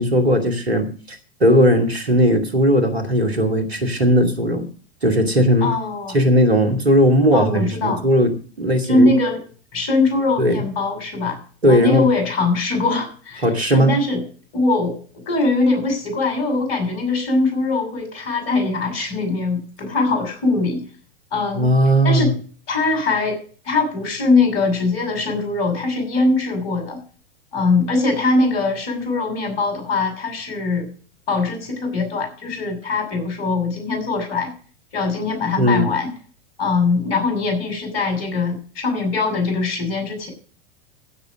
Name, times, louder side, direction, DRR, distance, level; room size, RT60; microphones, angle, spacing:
voice 1, 0.0-4.7 5.0-5.7 6.1-9.1 10.4-10.6 11.6-12.1 13.4-13.9 21.6-22.3 35.6-35.9, equal, 90° right, 5 dB, 2.5 m, -17 dB
voice 2, 5.6-6.2 7.3-8.0 8.8-9.4 9.7-11.4 11.7-13.5 13.7-14.2 14.5-20.8 21.3-21.7 22.0-22.3 22.7-27.0 27.5-30.9 31.3-34.5 34.9-36.1 36.6-40.3, left 3 dB, 50° left, 5 dB, 6.4 m, -21 dB
15.5 x 7.1 x 6.3 m, 0.41 s
figure-of-eight pair, 90°, 31 cm